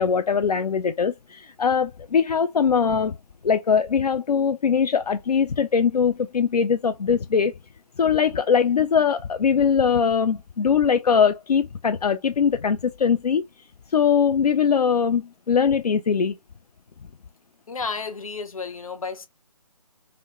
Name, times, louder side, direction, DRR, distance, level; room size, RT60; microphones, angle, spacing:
voice 1, 0.0-3.2 3.4-7.5 8.0-13.4 13.9-16.4, left 6 dB, 85° left, 0.4 m, -21 dB
voice 2, 17.7-19.3, left 4 dB, 60° left, 0.9 m, -32 dB
4.0 x 2.1 x 2.9 m
figure-of-eight pair, 155°, 20 cm